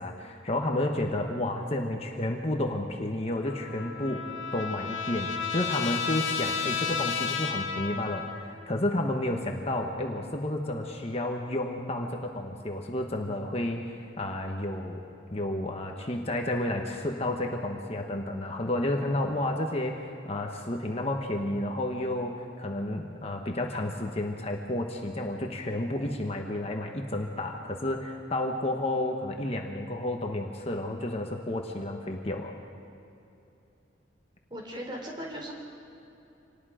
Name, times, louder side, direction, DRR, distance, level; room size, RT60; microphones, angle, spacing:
voice 1, 0.0-15.0 15.3-32.6, left 1 dB, 30° left, 2 dB, 1.2 m, -31 dB
Trumpet, 3.4-8.6, left 6 dB, 85° left, 1.7 m, -32 dB
voice 2, 34.5-35.5, equal, 25° right, 0 dB, 3.5 m, -38 dB
27.0 x 19.0 x 5.0 m, 2.9 s
head